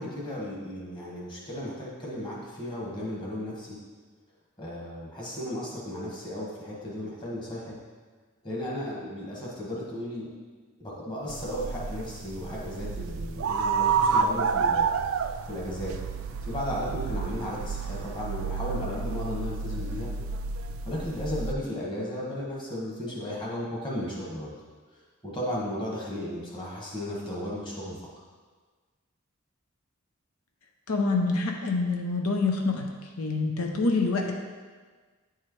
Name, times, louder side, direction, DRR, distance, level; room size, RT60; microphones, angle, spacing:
voice 1, 0.0-3.8 4.6-7.8 8.4-10.3 10.8-14.9 15.5-16.0 16.4-20.1 20.8-24.5 25.2-28.0, left 1 dB, 20° left, -5 dB, 1.4 m, -35 dB
sound 1, 11.3-21.5, right 5 dB, 70° right, 0.3 m, -30 dB
voice 2, 30.9-32.9 33.2-34.3, left 3 dB, 85° left, 2 dB, 0.6 m, -26 dB
9.5 x 4.6 x 3.1 m, 1.5 s
head